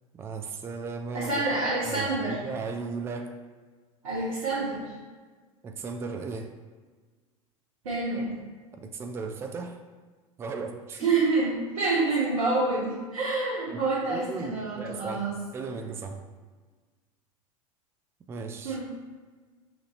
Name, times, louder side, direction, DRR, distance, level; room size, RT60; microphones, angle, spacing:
voice 1, 0.1-1.3 1.9-3.3 5.6-6.5 8.7-9.8 10.4-11.1 13.7-13.8 14.1-16.3 18.3-18.8, right 4 dB, 15° right, 5 dB, 0.3 m, -36 dB
voice 2, 1.1-2.4 4.0-4.9 7.8-8.3 11.0-15.4 18.6-18.9, right 3 dB, 65° right, -10 dB, 1.2 m, -27 dB
5.9 x 2.7 x 2.5 m, 1.4 s
figure-of-eight pair, 80°, 18 cm